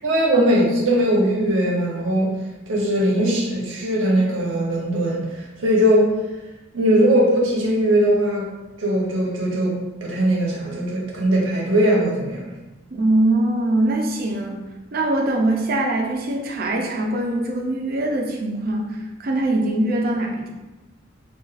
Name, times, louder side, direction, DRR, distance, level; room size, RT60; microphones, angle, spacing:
voice 1, 0.0-2.3 2.7-5.3 5.6-6.1 6.7-8.4 8.8-12.4, right 1 dB, 85° right, -3 dB, 0.9 m, -20 dB
voice 2, 12.9-14.6 14.9-20.5, right 1 dB, 50° right, 1 dB, 0.5 m, -22 dB
3.8 x 2.4 x 2.4 m, 1.1 s
head